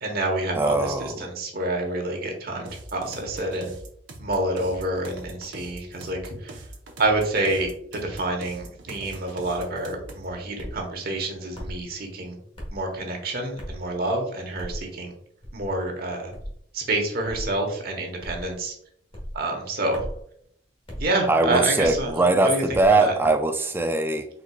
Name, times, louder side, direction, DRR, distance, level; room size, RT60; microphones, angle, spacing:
voice 1, 0.0-3.7 4.2-6.6 7.0-12.4 12.7-15.1 15.5-16.3 16.7-18.7 19.3-20.1 21.0-22.1 22.4-22.6 23.0-23.1, right 2 dB, 55° right, 2 dB, 1.1 m, -28 dB
voice 2, 0.5-1.3 21.3-24.3, right 2 dB, 10° right, 6 dB, 0.3 m, -21 dB
sound 1, 2.7-10.3, right 2 dB, 75° right, 0.8 m, -42 dB
sound 2, 10.6-10.8 11.5-11.8 12.6-12.8 13.6-13.9 14.6-14.8 15.4-15.7 16.3-16.6 17.3-17.5 18.2-18.5 19.1-19.4 19.9-20.2 20.9-21.1 21.8-22.1 22.7-23.0, equal, 30° left, 1.3 m, -36 dB
4.4 x 3.8 x 2.3 m, 0.67 s
head